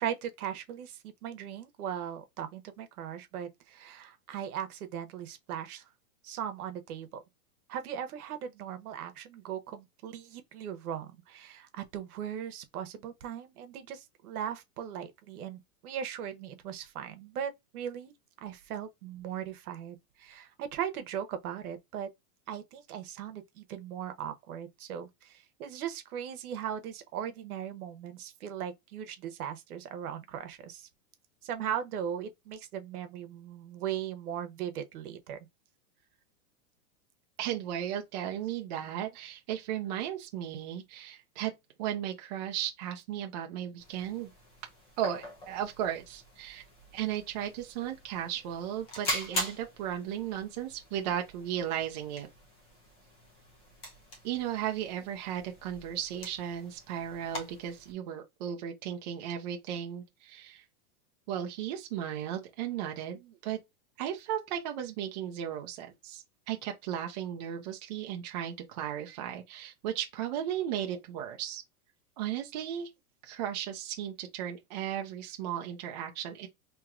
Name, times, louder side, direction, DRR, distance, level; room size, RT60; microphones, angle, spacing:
voice 1, 0.0-5.9 6.2-7.2 7.7-18.1 18.4-22.1 22.5-30.9 31.4-35.4 63.1-63.3, right 9 dB, 75° right, 1.0 m, -38 dB
voice 2, 37.4-41.5 41.8-44.3 45.0-46.6 46.9-52.3 54.2-60.6 61.3-63.6 64.0-71.6 72.2-72.9 73.2-76.5, right 10 dB, 30° right, 0.5 m, -35 dB
sound 1, 43.8-57.9, left 1 dB, 15° left, 0.6 m, -43 dB
4.5 x 2.9 x 2.4 m
supercardioid pair, 165°, 44 cm